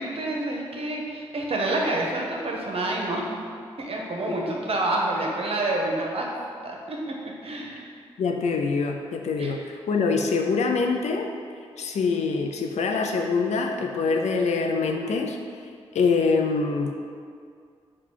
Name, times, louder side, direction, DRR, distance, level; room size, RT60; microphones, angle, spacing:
voice 1, 0.0-3.4 3.8-6.3 6.6-7.1 7.4-7.8 9.4-9.5, right 2 dB, 55° right, -1 dB, 0.8 m, -28 dB
voice 2, 8.2-11.3 11.8-15.4 15.9-16.9, left 4 dB, 70° left, 3 dB, 0.4 m, -24 dB
4.0 x 2.4 x 4.6 m, 2.2 s
supercardioid pair, 40°, 12 cm